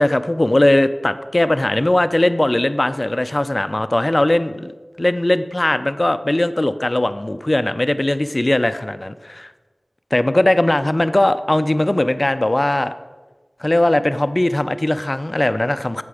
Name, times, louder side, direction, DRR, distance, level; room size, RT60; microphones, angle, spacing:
voice 1, 0.0-4.7 5.0-9.5 10.1-12.9 13.6-16.0, left 1 dB, 40° left, 11 dB, 0.5 m, -19 dB
14.0 x 6.9 x 4.9 m, 1.3 s
wide cardioid pair, 40°, 0 cm